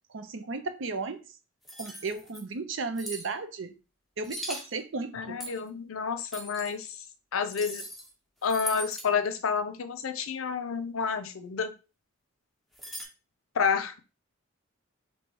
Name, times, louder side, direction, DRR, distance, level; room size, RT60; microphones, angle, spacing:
voice 1, 0.1-1.2 1.8-3.7 4.2-5.4, right 3 dB, 65° right, 0.6 m, -34 dB
sound 1, 1.6-2.4 2.9-3.3 4.2-4.7 5.4-5.7 6.3-6.7 7.5-8.1 8.4-9.1 12.7-13.0, equal, ahead, 0.9 m, -39 dB
voice 2, 5.1-7.0 7.3-7.8 8.4-11.7 13.5-14.0, left 6 dB, 90° left, 0.5 m, -29 dB
3.2 x 2.8 x 4.5 m
head